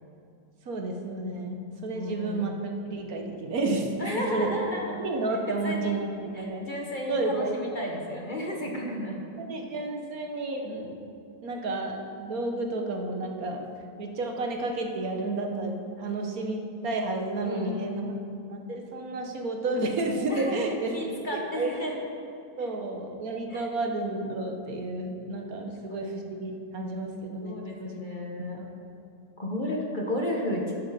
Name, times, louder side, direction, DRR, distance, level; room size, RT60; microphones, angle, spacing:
voice 1, 0.7-2.6 2.9-4.5 5.0-6.7 7.1-7.5 9.4-11.0 11.4-13.7 14.0-18.0 18.5-21.0 21.3-21.7 22.6-28.0 28.6-28.7, right 2 dB, 65° right, 3 dB, 1.4 m, -31 dB
voice 2, 1.9-2.6 4.0-5.0 5.5-6.0 6.3-9.2 17.4-18.3 20.3-21.9 22.6-22.7 23.5-23.7 25.6-26.1 27.4-28.6 29.4-30.7, left 1 dB, 35° left, -1 dB, 1.2 m, -33 dB
12.0 x 10.5 x 4.2 m, 2.5 s
omnidirectional pair, 1.7 m